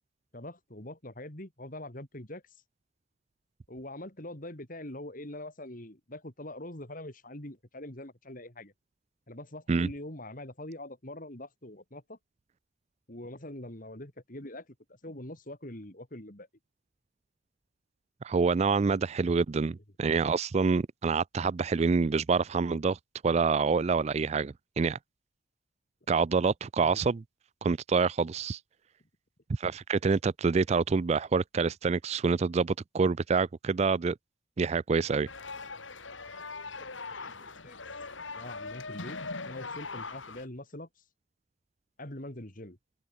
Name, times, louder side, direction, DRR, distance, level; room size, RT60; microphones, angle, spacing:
voice 1, 0.3-2.4 3.7-8.7 9.3-12.2 13.1-16.5 26.8-27.0 37.1-37.8 38.3-40.9 42.0-42.8, left 1 dB, 45° left, 3.6 m, -43 dB
voice 2, 18.2-23.0 23.2-25.0 26.1-27.2 27.6-28.6 29.5-34.2 34.6-35.3, right 4 dB, 35° right, 0.4 m, -27 dB
sound 1, 35.3-40.5, left 3 dB, 90° left, 6.1 m, -41 dB
open air
head